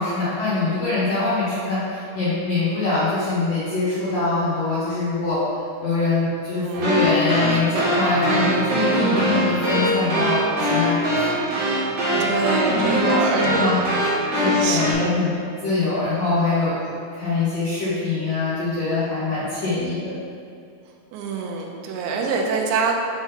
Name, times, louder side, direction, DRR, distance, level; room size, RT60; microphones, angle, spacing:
voice 1, 0.0-5.4 5.8-11.4 12.1-12.3 12.7-13.8 14.4-15.3 15.6-20.2, left 3 dB, 80° left, -12 dB, 1.5 m, -23 dB
voice 2, 6.5-6.9 12.2-13.9 14.4-15.1 21.1-22.9, right 4 dB, 80° right, 0 dB, 2.4 m, -25 dB
sound 1, 6.7-14.9, equal, 60° right, 2.1 m, -22 dB
7.2 x 3.9 x 4.0 m, 2.4 s
omnidirectional pair, 5.0 m